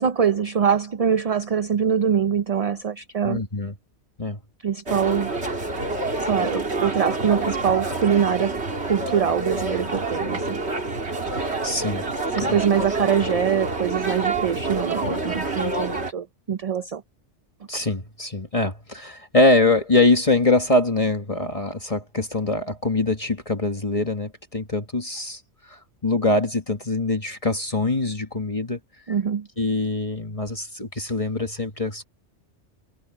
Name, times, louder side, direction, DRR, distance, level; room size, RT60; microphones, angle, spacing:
voice 1, 0.0-3.4 4.6-5.3 6.2-8.6 8.9-10.6 12.3-17.0 29.1-29.5, right 7 dB, 45° right, 0.5 m, -23 dB
voice 2, 3.2-3.7 4.2-4.4 11.6-12.0 12.4-12.6 17.7-28.8 29.6-32.0, left 2 dB, 30° left, 1.6 m, -23 dB
sound 1, 4.9-16.1, right 2 dB, 65° right, 3.2 m, -27 dB
omnidirectional pair, 1.2 m